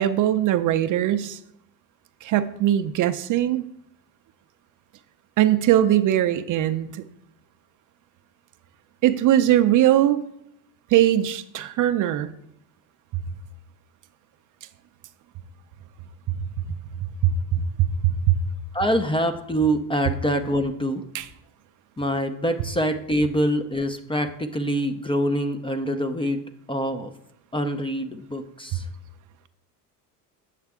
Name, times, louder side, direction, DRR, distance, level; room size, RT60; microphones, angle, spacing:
voice 1, 0.0-1.4 2.2-3.6 5.4-7.0 9.0-10.2 10.9-12.3 16.3-16.4 17.2-18.4 21.1-21.3, right 12 dB, 40° right, 10 dB, 0.5 m, -20 dB
voice 2, 18.7-21.1 22.0-26.4 26.7-27.1 27.5-28.8, equal, 10° left, 8 dB, 0.5 m, -25 dB
8.2 x 6.4 x 3.5 m, 0.78 s
supercardioid pair, 85°, 48 cm